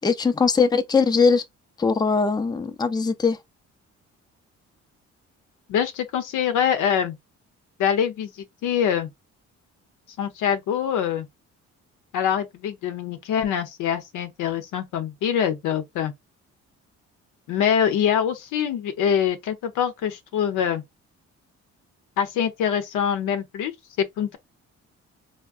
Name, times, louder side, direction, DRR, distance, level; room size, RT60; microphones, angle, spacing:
voice 1, 0.0-1.4 1.8-3.4, left 5 dB, 15° left, 0.4 m, -20 dB
voice 2, 5.7-7.2 7.8-9.1 10.2-11.3 12.1-16.1 17.5-20.8 22.2-23.7 24.0-24.4, left 8 dB, 90° left, 0.7 m, -24 dB
3.5 x 2.1 x 2.4 m
cardioid pair, 90°, 30 cm